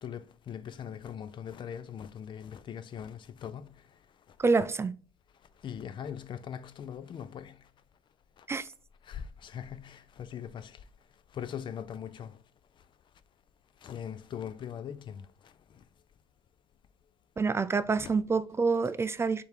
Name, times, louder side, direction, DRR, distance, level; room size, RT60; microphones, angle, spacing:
voice 1, 0.0-3.7 5.6-7.5 9.1-10.7 11.4-12.3 13.8-15.2 18.0-18.1, left 8 dB, 50° left, 0.4 m, -40 dB
voice 2, 4.4-4.9 8.5-8.7 17.4-19.4, right 4 dB, 25° right, 0.3 m, -27 dB
3.5 x 3.4 x 4.5 m
supercardioid pair, 75°, 10 cm